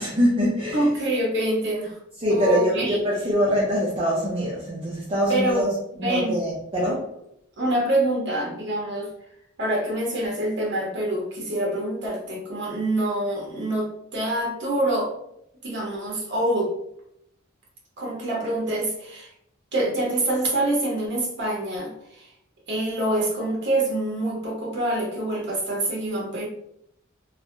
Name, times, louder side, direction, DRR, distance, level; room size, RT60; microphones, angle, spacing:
voice 1, 0.0-0.9 2.2-5.7 6.0-7.1, equal, 25° right, -5 dB, 0.6 m, -23 dB
voice 2, 0.7-2.0 2.3-3.0 5.3-5.7 6.0-6.4 7.6-9.1 9.6-15.1 15.6-16.7 18.0-19.3 19.7-22.3 22.7-26.5, right 1 dB, 60° right, -2 dB, 1.1 m, -26 dB
3.1 x 2.1 x 2.7 m, 0.75 s
head